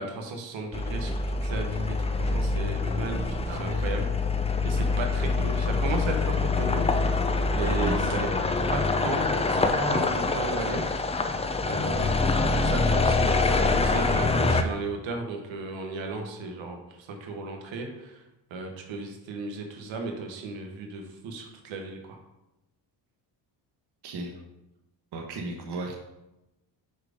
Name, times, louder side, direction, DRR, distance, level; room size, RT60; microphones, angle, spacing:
voice 1, 0.0-4.1 4.6-6.9 7.5-8.3 8.7-10.8 11.6-18.2 18.5-22.2, right 3 dB, 70° right, 3 dB, 1.3 m, -34 dB
sound 1, 0.7-14.6, left 3 dB, 15° left, 0.4 m, -25 dB
voice 2, 3.5-3.9 7.8-8.0 24.0-24.3 25.1-25.9, right 2 dB, 55° right, 0 dB, 1.1 m, -35 dB
5.0 x 4.6 x 5.0 m, 0.95 s
cardioid pair, 90°, 47 cm